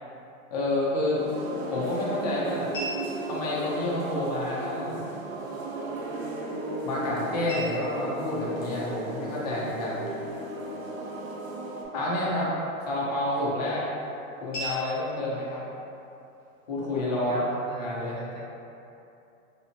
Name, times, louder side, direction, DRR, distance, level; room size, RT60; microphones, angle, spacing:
voice 1, 0.5-1.2 1.7-2.7 3.2-5.0 6.8-10.1 11.9-12.5 12.8-13.8 14.4-15.6 16.7-17.5 17.8-18.2, left 1 dB, 30° left, -6 dB, 0.4 m, -29 dB
sound 1, 1.0-17.0, right 1 dB, 15° left, 0.8 m, -45 dB
sound 2, 1.2-11.8, right 2 dB, 70° right, 0.7 m, -35 dB
voice 2, 17.1-18.4, equal, 35° right, -6 dB, 0.4 m, -40 dB
3.3 x 2.8 x 2.7 m, 2.7 s
supercardioid pair, 170°, 43 cm